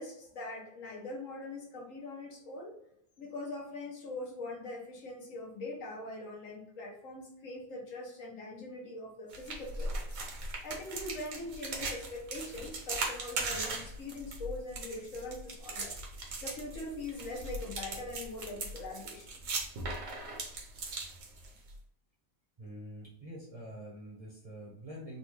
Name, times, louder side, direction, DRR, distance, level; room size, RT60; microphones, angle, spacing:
voice 1, 0.0-2.8 3.2-10.1 10.4-16.0 16.2-19.3, left 2 dB, 70° left, -1 dB, 1.4 m, -42 dB
sound 1, 9.3-21.7, right 3 dB, 65° right, 1.2 m, -39 dB
voice 2, 22.6-25.2, right 1 dB, 30° right, -4 dB, 0.8 m, -46 dB
4.0 x 2.3 x 3.0 m, 0.74 s
omnidirectional pair, 1.4 m